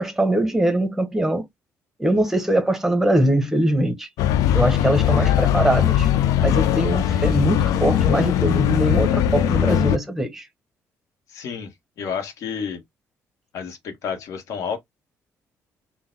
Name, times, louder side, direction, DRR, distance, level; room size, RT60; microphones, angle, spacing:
voice 1, 0.0-1.5 2.0-4.1 4.5-6.1 6.4-10.5, right 1 dB, 5° right, 0.8 m, -22 dB
sound 1, 4.2-10.0, left 10 dB, 90° left, 0.4 m, -20 dB
voice 2, 11.3-11.7 12.0-12.8 13.5-14.8, left 6 dB, 65° left, 1.3 m, -30 dB
3.9 x 2.2 x 3.9 m
cardioid pair, 160°, 6 cm